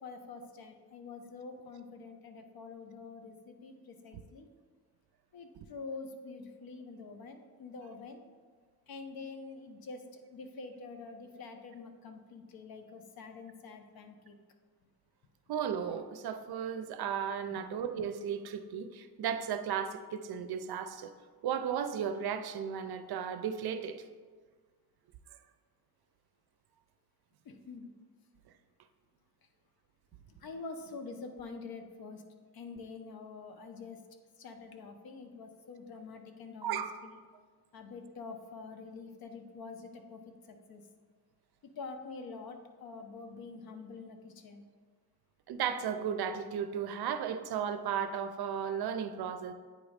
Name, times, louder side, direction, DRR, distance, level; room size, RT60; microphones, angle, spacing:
voice 1, 0.0-4.5 5.3-8.2 8.9-14.4 17.5-17.6 27.4-27.9 30.3-32.2 32.5-34.0 34.4-37.2 37.7-40.8 41.6-44.7, left 4 dB, 65° left, 6 dB, 0.8 m, -46 dB
voice 2, 15.5-21.1 21.4-24.0 36.6-36.9 45.5-49.5, right 8 dB, 65° right, 9 dB, 0.6 m, -35 dB
8.8 x 3.0 x 5.0 m, 1.5 s
cardioid pair, 125°, 40 cm